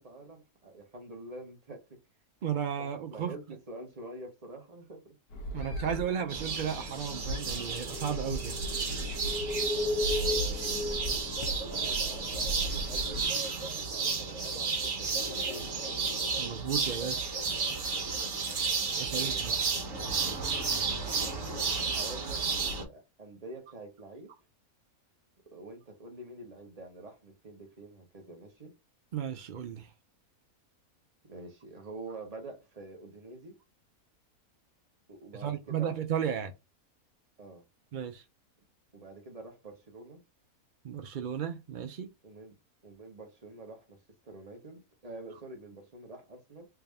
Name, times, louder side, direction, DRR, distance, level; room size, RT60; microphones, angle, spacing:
voice 1, 0.0-1.9 2.8-5.1 9.9-16.0 19.0-19.6 21.3-24.3 25.5-28.7 31.3-33.6 35.1-36.0 37.4-37.6 38.9-40.2 42.2-42.6 42.8-44.0 44.2-46.7, right 2 dB, 30° right, 1.1 m, -47 dB
voice 2, 2.4-3.3 5.5-8.6 16.4-17.3 19.0-19.6 29.1-29.9 35.3-36.5 37.9-38.2 40.8-42.1, right 8 dB, 80° right, 0.4 m, -34 dB
sound 1, 5.3-13.2, left 1 dB, 85° left, 1.4 m, -35 dB
sound 2, 6.3-22.8, right 4 dB, 55° right, 1.4 m, -32 dB
3.5 x 2.6 x 3.4 m
omnidirectional pair, 1.5 m